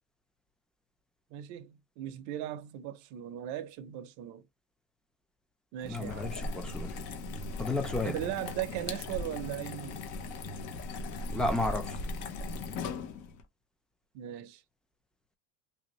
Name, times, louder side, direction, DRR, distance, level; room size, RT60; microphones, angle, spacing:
voice 1, 1.3-4.4 5.7-6.5 8.0-10.0 14.1-14.6, right 12 dB, 55° right, 0.6 m, -38 dB
sound 1, 5.8-13.4, left 3 dB, 55° left, 0.9 m, -38 dB
voice 2, 5.9-7.0 7.6-8.2 11.3-12.0, left 2 dB, ahead, 0.5 m, -32 dB
3.3 x 2.7 x 2.9 m
cardioid pair, 155°, 35 cm